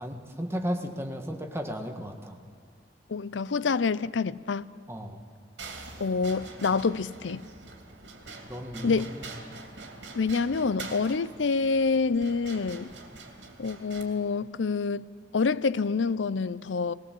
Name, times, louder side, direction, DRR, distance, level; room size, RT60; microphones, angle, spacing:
voice 1, 0.0-2.4 4.9-5.3 8.5-9.3, equal, 15° right, 4 dB, 1.5 m, -35 dB
voice 2, 3.1-4.7 6.0-7.5 8.8-9.0 10.1-12.9 13.6-15.1 15.3-16.9, left 4 dB, 85° left, 18 dB, 0.5 m, -27 dB
sound 1, 5.6-14.0, right 3 dB, 75° right, 2.8 m, -44 dB
20.0 x 18.0 x 7.7 m, 2.2 s
head